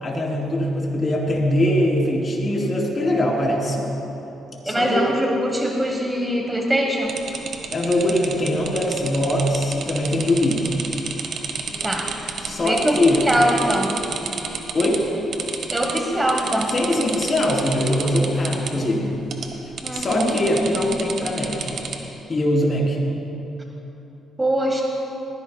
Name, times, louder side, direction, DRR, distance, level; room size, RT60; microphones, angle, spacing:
voice 1, 0.0-3.8 4.6-5.0 7.7-10.7 12.4-13.3 14.7-15.0 16.7-19.2 19.9-21.8 22.3-23.0, left 1 dB, 35° left, -2 dB, 3.2 m, -22 dB
sound 1, 2.5-13.5 14.2-15.7, left 1 dB, 80° left, 3.2 m, -46 dB
voice 2, 4.6-7.2 11.8-12.1 12.6-14.0 15.7-16.7 19.8-20.4 24.4-24.8, right 1 dB, 15° right, 2 dB, 1.1 m, -22 dB
sound 2, 7.1-15.0 15.3-16.0 16.3-18.7 19.3-19.5 19.8-21.9, right 6 dB, 65° right, 1.4 m, -30 dB
20.0 x 15.5 x 2.2 m, 2.9 s
cardioid pair, 90°, 0 cm